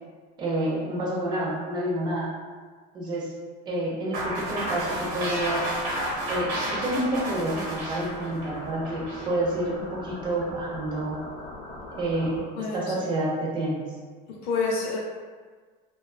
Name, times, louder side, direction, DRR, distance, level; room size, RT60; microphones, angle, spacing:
voice 1, 0.4-2.3 2.9-3.3 3.7-5.6 6.3-11.2 11.9-12.4 12.7-13.8, right 1 dB, 20° right, -4 dB, 0.4 m, -28 dB
sound 1, 4.1-12.4, left 1 dB, 85° left, 0.7 m, -41 dB
sound 2, 4.1-9.3, right 1 dB, 80° right, 1.0 m, -31 dB
voice 2, 14.3-15.0, left 4 dB, 45° left, -3 dB, 0.5 m, -28 dB
2.3 x 2.3 x 2.3 m, 1.5 s
cardioid pair, 175°, 21 cm